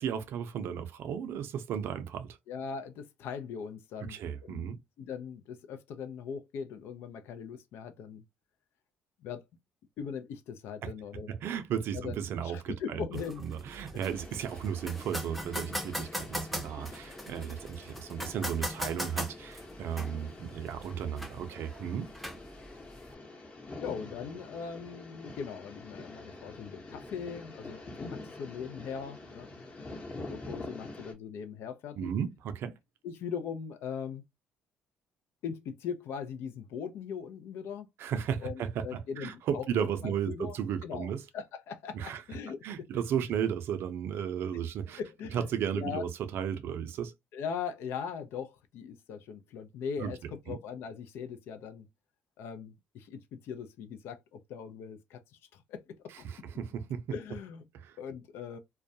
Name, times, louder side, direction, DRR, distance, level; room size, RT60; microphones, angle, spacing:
voice 1, 0.0-2.4 4.1-4.8 10.8-10.9 11.3-13.0 13.4-22.1 32.0-32.7 38.0-41.2 41.9-42.2 42.6-45.0 45.3-47.1 50.0-50.1 50.5-50.6 56.2-57.0 57.7-58.0, right 8 dB, 65° right, 0.5 m, -34 dB
voice 2, 2.5-8.2 9.2-9.5 10.0-11.3 11.9-12.2 12.4-13.4 23.8-29.9 30.2-32.1 33.0-34.2 35.4-37.9 38.4-40.6 40.8-43.3 45.0-45.5 45.7-46.1 47.3-51.9 52.4-56.3 57.1-57.6 58.0-58.6, left 7 dB, 70° left, 0.5 m, -40 dB
sound 1, 13.1-23.1, equal, ahead, 0.6 m, -41 dB
sound 2, 14.0-31.1, left 2 dB, 35° left, 0.9 m, -46 dB
2.3 x 2.1 x 2.6 m
hypercardioid pair, 60°, 4 cm